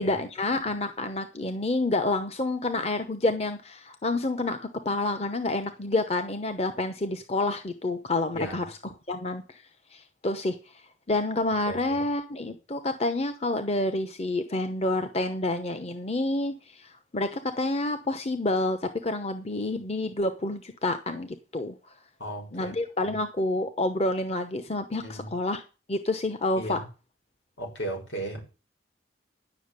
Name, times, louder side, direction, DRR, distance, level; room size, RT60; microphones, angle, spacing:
voice 1, 0.0-8.8 9.1-9.6 9.9-10.6 11.1-21.7 22.5-25.6 25.9-26.8, left 2 dB, 35° left, 9 dB, 0.9 m, -28 dB
voice 2, 11.7-12.0 22.2-22.7 25.0-25.3 26.6-26.8 27.6-28.4, right 1 dB, 80° left, 2 dB, 6.1 m, -35 dB
10.5 x 7.2 x 8.2 m, 0.32 s
head